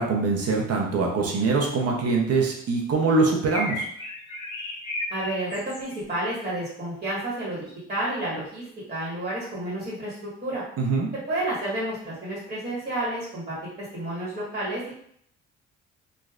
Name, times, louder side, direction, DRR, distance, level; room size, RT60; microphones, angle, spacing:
voice 1, 0.0-3.9 10.8-11.1, right 3 dB, 55° right, 0 dB, 0.7 m, -23 dB
sound 1, 3.5-6.0, left 2 dB, 65° left, 1.0 m, -33 dB
voice 2, 5.1-10.6 11.3-14.9, right 1 dB, 25° right, -8 dB, 1.5 m, -31 dB
3.1 x 2.5 x 2.4 m, 0.67 s
cardioid pair, 90°, 30 cm